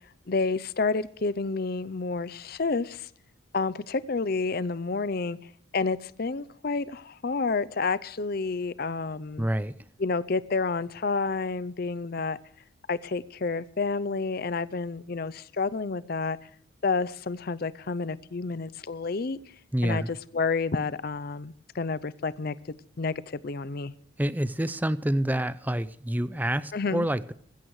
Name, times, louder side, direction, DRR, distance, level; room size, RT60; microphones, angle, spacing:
voice 1, 0.3-3.1 3.5-9.5 10.0-12.4 12.9-16.5 16.8-19.4 19.8-22.6 23.0-23.9 26.7-27.1, left 4 dB, 45° left, 0.5 m, -29 dB
voice 2, 9.4-9.7 19.7-20.1 24.2-27.3, right 1 dB, 10° right, 0.5 m, -27 dB
20.5 x 15.5 x 3.2 m
head